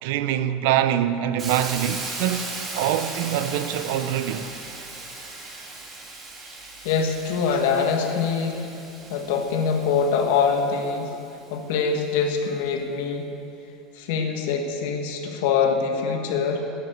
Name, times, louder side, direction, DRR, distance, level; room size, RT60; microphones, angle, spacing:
voice 1, 0.0-4.5 7.5-7.6, right 11 dB, 70° right, 0.6 m, -24 dB
Hiss, 1.4-11.3, right 3 dB, 25° right, 1.9 m, -37 dB
voice 2, 6.8-8.8 9.1-11.1 11.5-13.3 13.9-16.6, left 5 dB, 75° left, 1.6 m, -24 dB
11.0 x 9.2 x 7.8 m
cardioid pair, 165°, 0 cm